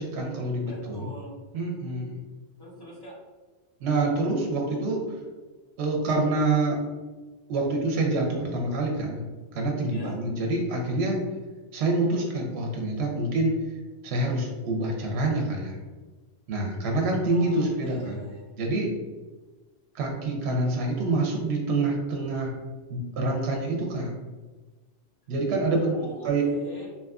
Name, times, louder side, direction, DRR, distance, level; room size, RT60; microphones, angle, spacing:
voice 1, 0.0-1.1 1.5-2.2 3.8-5.2 5.8-6.8 7.5-9.2 9.5-11.2 11.7-13.6 14.0-15.8 16.5-18.2 18.6-18.9 19.9-22.5 22.9-24.1 25.3-26.0 26.2-26.4, right 2 dB, 80° right, 0 dB, 0.8 m, -26 dB
voice 2, 0.6-1.4 2.6-3.2 9.9-10.2 17.3-18.5 25.6-26.9, equal, 25° left, -7 dB, 0.8 m, -42 dB
2.7 x 2.4 x 2.3 m, 1.3 s
omnidirectional pair, 1.1 m